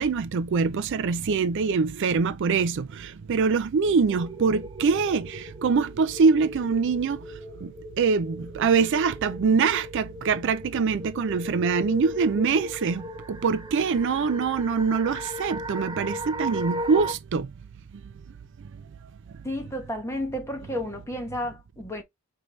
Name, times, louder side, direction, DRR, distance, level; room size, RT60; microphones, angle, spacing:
voice 1, 0.0-7.2 7.6-7.7 8.0-13.0 13.3-17.5, right 5 dB, 55° right, 0.4 m, -24 dB
sound 1, 4.1-17.1, equal, 20° right, 0.6 m, -37 dB
voice 2, 19.4-22.0, left 1 dB, 15° left, 1.1 m, -32 dB
5.1 x 2.8 x 3.1 m
head